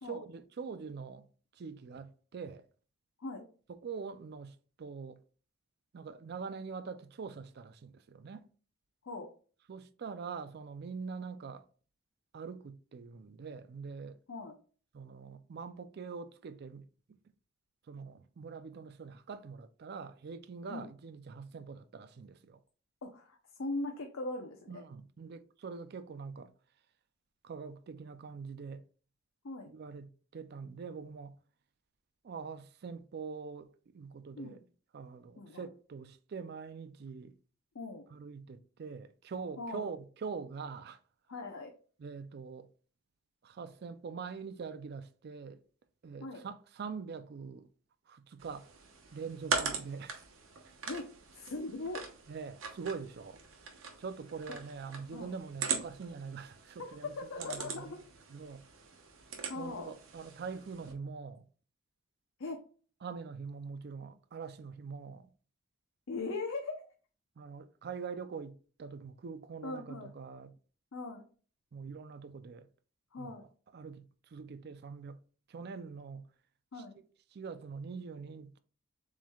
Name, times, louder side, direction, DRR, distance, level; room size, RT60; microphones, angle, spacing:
voice 1, 0.0-1.3 1.5-2.7 3.7-5.2 5.9-8.5 9.7-11.7 12.3-14.2 14.9-17.2 17.9-22.6 24.7-26.5 27.4-28.9 29.7-31.4 32.2-34.6 34.9-37.3 38.1-41.0 42.0-42.7 43.4-45.6 46.0-47.7 48.1-48.7 49.1-50.3 50.7-50.8 52.3-53.4 54.0-57.9 58.3-58.6 59.6-61.5 63.0-65.3 67.4-70.5 71.7-72.7 73.2-73.5 73.7-75.2 75.5-76.3 77.3-78.6, right 5 dB, 50° right, 0.4 m, -44 dB
voice 2, 23.0-24.8 29.4-29.7 34.4-34.6 35.4-35.7 37.7-38.1 39.6-39.9 41.3-41.7 46.2-46.4 50.8-52.0 55.1-55.4 57.0-58.0 59.5-59.9 62.4-62.6 66.1-66.8 69.6-70.1 70.9-71.2 73.1-73.4 76.7-77.0, left 3 dB, 75° left, 0.7 m, -40 dB
sound 1, 48.4-60.9, right 5 dB, 75° right, 1.0 m, -41 dB
7.2 x 3.2 x 2.3 m
head